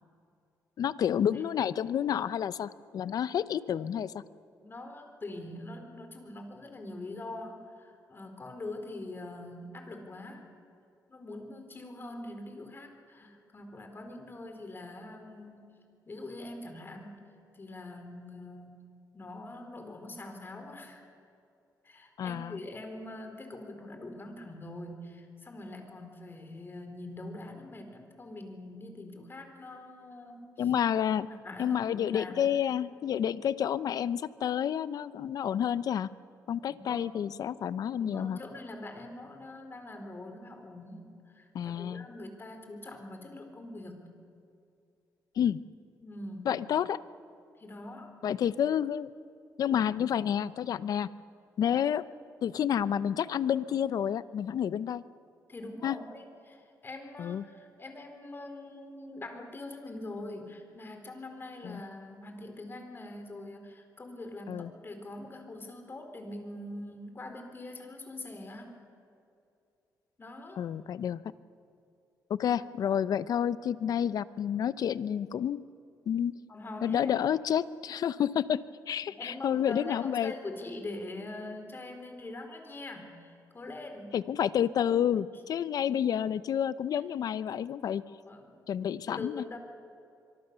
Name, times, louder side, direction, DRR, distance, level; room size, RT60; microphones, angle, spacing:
voice 1, 0.8-4.1 22.2-22.6 30.6-31.3 31.6-36.1 36.5-38.4 41.5-42.1 45.4-45.6 46.5-47.0 48.2-49.1 49.6-51.1 51.6-52.0 52.4-55.0 55.8-56.0 57.2-57.5 61.6-61.8 64.5-64.7 70.6-71.2 72.3-75.6 76.1-76.3 76.8-80.3 84.1-88.0 88.7-89.6, left 9 dB, 65° left, 16 dB, 0.7 m, -29 dB
voice 2, 4.5-10.5 11.1-15.8 16.1-17.3 17.5-18.8 19.1-21.1 21.8-30.7 31.3-32.5 36.7-37.1 38.0-44.1 46.0-46.5 47.6-48.2 51.7-51.8 55.5-68.8 70.2-70.6 76.5-77.1 79.0-84.2 86.9-87.0 88.0-88.6 89.1-89.6, left 2 dB, 35° left, 5 dB, 4.4 m, -43 dB
24.5 x 23.5 x 7.0 m, 2.5 s
cardioid pair, 85°, 7 cm